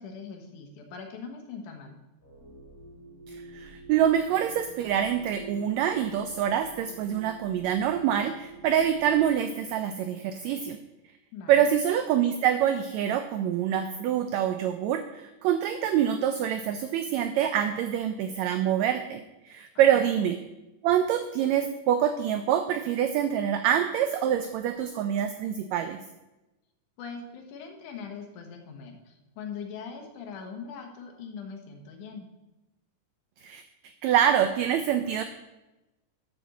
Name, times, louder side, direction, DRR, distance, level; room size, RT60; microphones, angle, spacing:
voice 1, 0.0-2.0 11.3-11.7 19.9-20.2 27.0-32.3, left 5 dB, 75° left, 3 dB, 2.5 m, -41 dB
sound 1, 2.2-9.4, right 1 dB, 40° left, 1.4 m, -47 dB
voice 2, 3.3-10.8 11.5-19.2 19.4-20.4 20.8-26.0 33.4-33.6 34.0-35.2, right 10 dB, 90° right, 8 dB, 1.6 m, -25 dB
12.5 x 5.1 x 4.0 m, 0.99 s
omnidirectional pair, 3.7 m